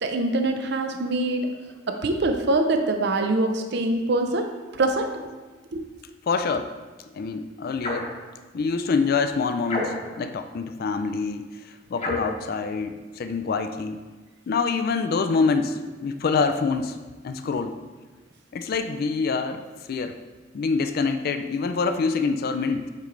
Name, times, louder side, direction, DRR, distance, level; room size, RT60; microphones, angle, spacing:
voice 1, 0.0-1.5 1.9-4.5 4.8-5.2 5.7-5.8, right 2 dB, 60° right, 5 dB, 0.6 m, -24 dB
voice 2, 6.3-6.7 7.2-8.1 8.5-14.0 14.5-17.0 17.2-17.8 18.5-20.2 20.5-22.9, left 4 dB, 55° left, 8 dB, 0.3 m, -26 dB
sound 1, 7.8-8.2 9.7-10.2 12.0-12.4, left 2 dB, 35° left, 0.9 m, -29 dB
8.2 x 3.2 x 3.8 m, 1.3 s
head